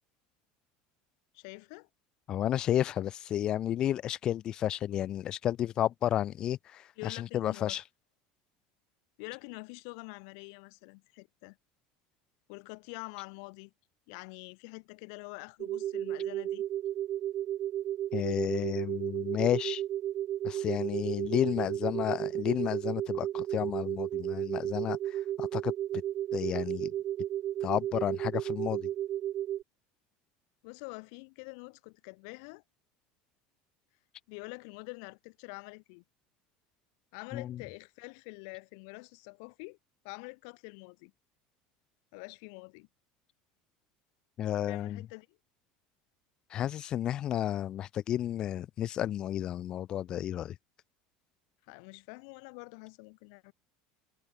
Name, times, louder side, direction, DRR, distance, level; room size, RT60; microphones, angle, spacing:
voice 1, 1.3-1.9 7.0-7.8 9.2-11.6 12.5-13.7 14.1-16.7 30.6-32.6 34.3-36.0 37.1-39.8 40.0-41.1 42.1-42.9 44.7-45.4 51.7-53.5, left 37 dB, 65° left, 2.1 m, -46 dB
voice 2, 2.3-7.8 18.1-19.8 20.4-25.7 26.3-26.9 27.6-28.9 37.3-37.6 44.4-45.0 46.5-50.6, left 11 dB, 30° left, 0.6 m, -32 dB
sound 1, 15.6-29.6, right 12 dB, 30° right, 0.7 m, -33 dB
cardioid pair, 170°, 3 cm